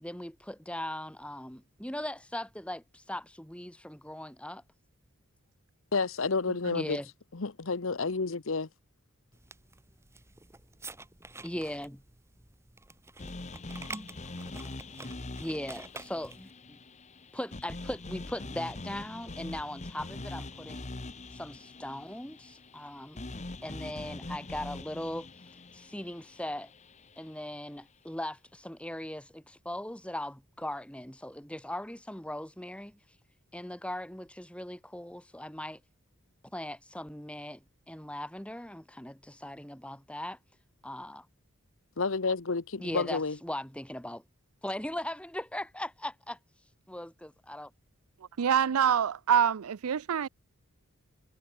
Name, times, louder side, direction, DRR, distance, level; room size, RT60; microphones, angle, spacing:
voice 1, 0.0-4.6 6.7-7.1 11.4-12.0 15.4-16.8 17.3-20.9 21.3-23.3 23.6-26.7 27.2-33.0 33.5-35.8 36.5-40.4 40.8-41.3 42.8-44.2 44.6-46.4 46.9-47.7, left 1 dB, 5° left, 2.6 m, -39 dB
voice 2, 5.9-7.0 7.3-8.7 42.0-43.4, left 4 dB, 65° left, 0.9 m, -30 dB
sound 1, 9.3-16.5, right 3 dB, 10° right, 1.8 m, -48 dB
sound 2, 13.2-27.4, left 2 dB, 35° left, 1.1 m, -43 dB
voice 3, 48.4-50.3, right 8 dB, 90° right, 0.5 m, -26 dB
head